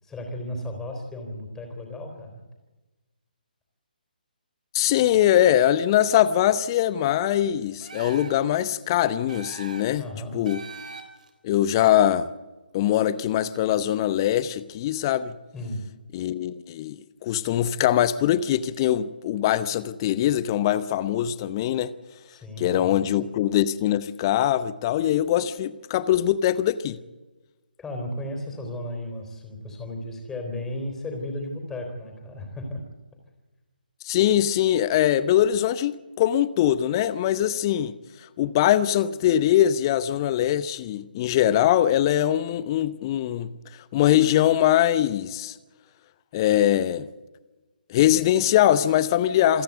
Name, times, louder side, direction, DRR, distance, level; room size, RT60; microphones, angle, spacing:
voice 1, 0.0-2.4 10.0-10.4 15.5-15.8 22.3-23.1 27.8-32.8, left 1 dB, 10° left, 3.8 m, -34 dB
voice 2, 4.7-10.0 10.3-10.6 11.4-12.3 12.7-15.3 16.1-21.9 22.6-27.0 34.0-37.9 38.4-43.5 43.9-45.6 46.3-47.1 47.9-49.6, left 11 dB, 25° left, 0.8 m, -22 dB
sound 1, 7.8-8.5 9.3-10.0 10.4-11.3, right 4 dB, 55° right, 3.7 m, -41 dB
27.5 x 10.5 x 9.4 m
figure-of-eight pair, 140°, 5 cm